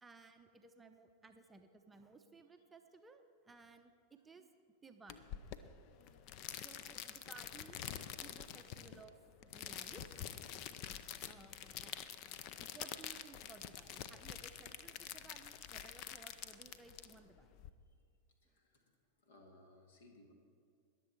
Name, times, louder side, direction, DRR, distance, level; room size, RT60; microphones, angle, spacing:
voice 1, 0.0-3.9 4.2-4.5 4.8-5.4 6.6-7.8 8.2-9.2 9.4-10.0 11.3-12.1 12.6-17.6, right 4 dB, 10° right, 5 dB, 0.7 m, -59 dB
sound 1, 5.1-17.7, left 10 dB, 40° left, 0.6 m, -47 dB
voice 2, 18.4-18.8 19.2-20.3, left 1 dB, 60° left, 3 dB, 2.1 m, -63 dB
21.0 x 7.7 x 4.5 m, 2.3 s
figure-of-eight pair, 90°, 0 cm